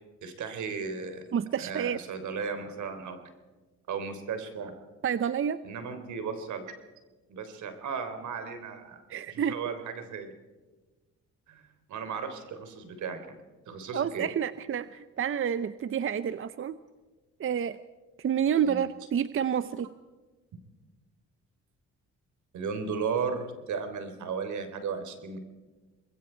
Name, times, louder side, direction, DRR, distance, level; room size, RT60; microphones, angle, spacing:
voice 1, 0.2-1.2 1.6-3.2 3.9-4.7 5.6-6.6 7.3-10.3 11.5-11.6 11.9-13.4 13.7-14.3 18.6-18.9 22.5-25.4, right 5 dB, 75° right, 8 dB, 3.7 m, -35 dB
voice 2, 1.3-2.0 5.0-5.6 9.1-9.5 13.9-16.8 17.4-17.8 18.2-19.9, right 8 dB, 45° right, 13 dB, 0.8 m, -29 dB
26.5 x 21.5 x 4.6 m, 1.3 s
cardioid pair, 90°, 30 cm